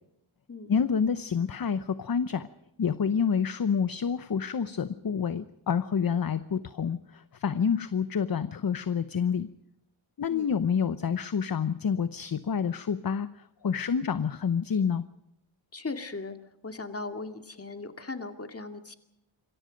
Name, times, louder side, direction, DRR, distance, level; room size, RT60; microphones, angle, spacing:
voice 1, 0.7-2.5 2.8-9.5 10.2-15.0, left 6 dB, 45° left, 12 dB, 0.9 m, -28 dB
voice 2, 15.7-16.4 16.6-18.9, left 3 dB, 30° left, 6 dB, 2.3 m, -38 dB
27.5 x 22.5 x 5.2 m, 0.82 s
wide cardioid pair, 130°, 47 cm